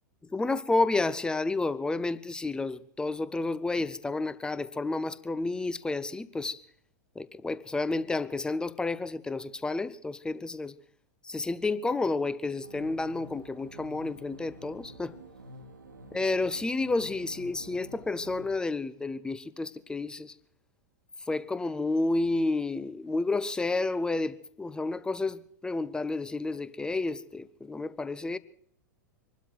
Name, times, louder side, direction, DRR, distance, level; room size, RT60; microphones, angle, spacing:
voice 1, 0.3-6.6 7.2-10.8 11.2-15.2 16.1-20.4 21.3-28.4, left 3 dB, 10° left, 0.6 m, -30 dB
sound 1, 12.6-18.5, right 2 dB, 85° right, 1.7 m, -49 dB
25.0 x 12.5 x 4.6 m
figure-of-eight pair, 95°, 10 cm